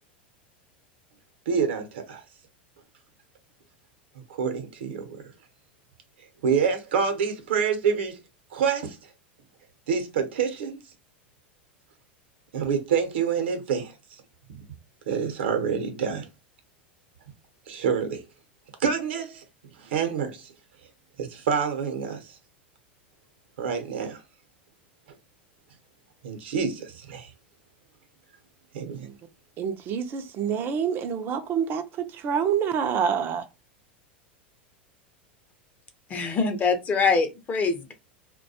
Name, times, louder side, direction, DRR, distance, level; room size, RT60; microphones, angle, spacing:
voice 1, 1.5-2.2 4.3-5.2 6.4-8.2 8.5-9.0 9.9-10.8 12.5-13.9 15.1-16.3 17.7-18.2 18.8-19.4 19.8-20.5 21.2-22.3 23.6-24.2 26.2-27.3 28.7-29.1, right 6 dB, 80° right, 0.7 m, -27 dB
voice 2, 29.6-33.5, right 7 dB, 40° right, 0.4 m, -27 dB
voice 3, 36.1-37.9, left 4 dB, 30° left, 0.6 m, -24 dB
2.3 x 2.2 x 2.6 m
hypercardioid pair, 100°, 6 cm